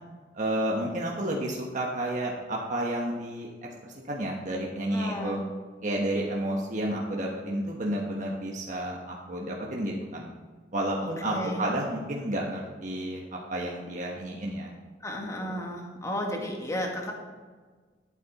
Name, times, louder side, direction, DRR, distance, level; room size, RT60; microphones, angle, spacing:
voice 1, 0.3-3.5 3.8-5.4 5.8-10.3 10.7-14.7 15.4-15.6, right 1 dB, 45° right, -2 dB, 1.2 m, -31 dB
voice 2, 4.9-5.4 11.2-11.6 15.0-17.1, equal, 20° left, 0 dB, 1.7 m, -33 dB
12.0 x 8.6 x 4.1 m, 1.4 s
head